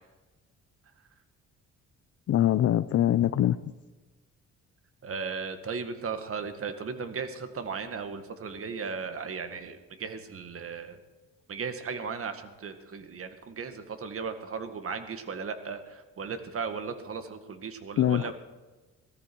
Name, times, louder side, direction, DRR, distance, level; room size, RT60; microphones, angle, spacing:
voice 1, 2.3-3.7 18.0-18.3, left 12 dB, 55° left, 12 dB, 0.6 m, -23 dB
voice 2, 5.0-11.0 11.5-18.3, right 5 dB, 50° right, 8 dB, 1.9 m, -36 dB
19.0 x 14.0 x 4.6 m, 1.2 s
cardioid pair, 90°, 30 cm